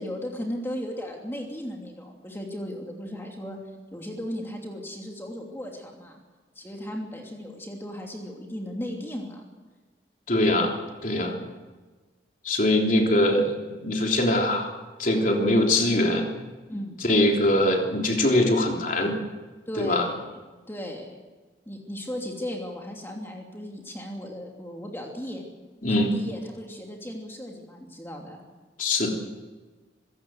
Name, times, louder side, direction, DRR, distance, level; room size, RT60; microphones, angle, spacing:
voice 1, 0.0-3.6 3.9-6.2 6.5-9.4 11.2-11.5 16.7-17.0 19.7-20.3 20.7-21.2 21.7-25.4 26.0-28.4, equal, 10° left, 1 dB, 2.8 m, -36 dB
voice 2, 10.3-10.7 11.0-11.4 12.4-14.7 15.0-16.3 17.0-19.2 19.8-20.1 25.8-26.1 28.8-29.1, left 1 dB, 45° left, 1 dB, 3.5 m, -22 dB
25.5 x 16.5 x 7.9 m, 1.3 s
head